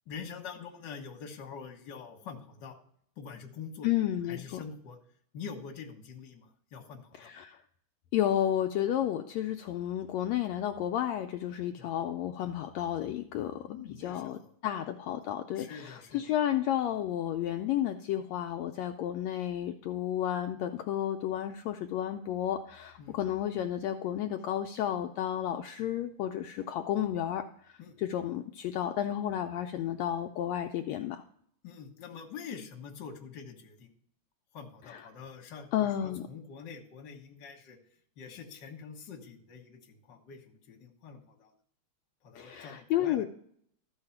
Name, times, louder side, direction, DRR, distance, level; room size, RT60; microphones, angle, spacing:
voice 1, 0.1-2.8 3.2-3.9 4.3-5.0 5.3-7.3 11.8-11.9 13.7-14.5 15.6-16.2 23.0-23.2 27.8-27.9 31.6-33.9 34.5-37.8 38.2-41.5 42.2-43.3, left 6 dB, 50° left, 3 dB, 1.5 m, -45 dB
voice 2, 3.8-4.6 7.2-7.6 8.1-13.6 14.0-27.4 28.0-31.2 34.9-35.0 35.7-36.2 42.3-43.3, left 11 dB, 80° left, 5 dB, 1.6 m, -32 dB
13.5 x 4.8 x 5.8 m, 0.64 s
omnidirectional pair, 3.4 m